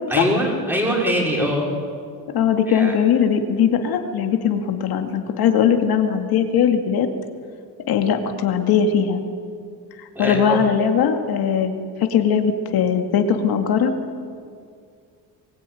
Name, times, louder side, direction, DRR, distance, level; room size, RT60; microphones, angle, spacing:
voice 1, 0.1-1.7 2.7-2.9 10.1-10.6, equal, 5° right, -2 dB, 5.0 m, -22 dB
voice 2, 2.3-7.1 7.9-9.2 10.0-11.7 12.0-13.9, left 7 dB, 65° left, 5 dB, 2.4 m, -19 dB
24.0 x 21.0 x 9.4 m, 2.2 s
cardioid pair, 175°, 40 cm